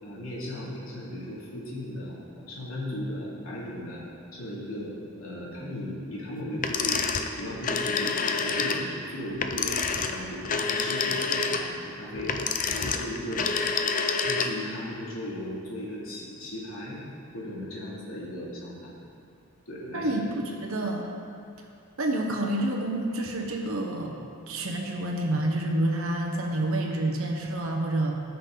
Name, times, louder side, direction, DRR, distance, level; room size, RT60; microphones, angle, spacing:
voice 1, 0.0-4.0 4.3-7.0 7.3-9.8 10.1-12.3 12.6-13.5 14.2-17.0 17.3-18.9 19.7-20.4 24.2-24.3, left 1 dB, 70° left, -6 dB, 3.0 m, -37 dB
sound 1, 6.6-14.8, left 5 dB, 40° left, 0.6 m, -28 dB
voice 2, 19.9-21.1 22.0-24.1 24.5-28.2, right 1 dB, 75° right, 0 dB, 1.2 m, -28 dB
18.5 x 6.4 x 4.0 m, 2.6 s
head